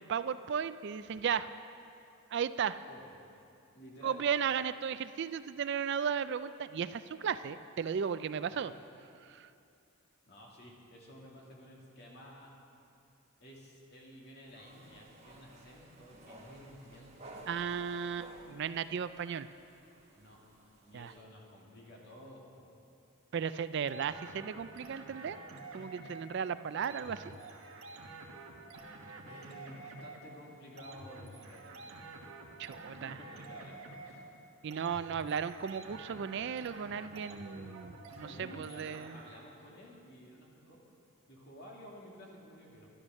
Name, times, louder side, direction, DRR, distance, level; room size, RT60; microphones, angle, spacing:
voice 1, 0.0-1.5 2.3-2.8 4.0-8.7 9.3-9.5 17.5-19.5 20.9-21.1 23.3-25.4 25.7-27.3 32.6-33.2 34.6-39.2, right 7 dB, 55° right, 13 dB, 0.3 m, -35 dB
voice 2, 3.7-4.2 8.4-8.7 10.3-12.5 13.4-17.3 20.1-20.4 20.8-22.7 29.2-31.8 32.8-34.3 38.0-40.8 41.3-42.9, equal, 50° left, -2 dB, 2.4 m, -53 dB
sound 1, 14.5-21.2, right 1 dB, 30° right, 1.6 m, -55 dB
sound 2, 23.9-39.6, right 2 dB, 75° right, 1.3 m, -49 dB
12.5 x 11.5 x 6.4 m, 2.6 s
head